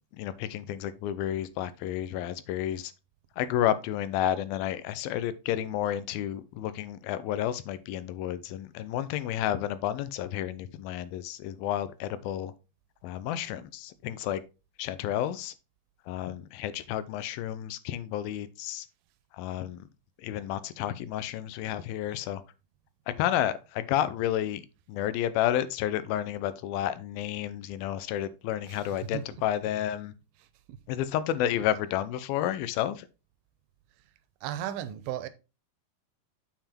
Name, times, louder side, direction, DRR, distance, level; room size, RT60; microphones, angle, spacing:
voice 1, 0.1-2.9 3.4-12.5 13.0-14.4 14.8-15.5 16.1-18.9 19.4-19.8 20.2-22.4 23.1-24.6 24.9-30.1 30.9-33.1, left 11 dB, 85° left, 2.4 m, -31 dB
voice 2, 28.7-29.3 30.7-30.8 34.4-35.3, right 11 dB, 90° right, 2.5 m, -35 dB
6.9 x 5.8 x 4.3 m
omnidirectional pair, 4.3 m